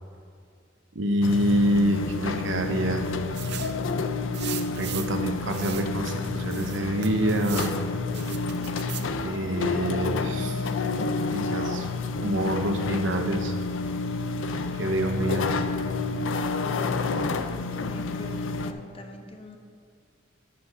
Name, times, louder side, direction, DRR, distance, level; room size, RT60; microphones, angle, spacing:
voice 1, 0.9-3.0 4.8-7.7 9.2-10.6 11.3-11.9 12.2-13.5 14.7-15.5, equal, 75° right, 4 dB, 1.0 m, -26 dB
sound 1, 1.2-18.7, left 3 dB, 80° left, 0.5 m, -29 dB
sound 2, 3.3-3.8 4.3-5.2 5.5-5.9 6.5-7.8 8.1-9.1, right 13 dB, 60° right, 0.5 m, -38 dB
voice 2, 17.8-19.6, left 1 dB, 30° left, 4 dB, 0.9 m, -43 dB
8.7 x 5.8 x 6.2 m, 2.3 s
head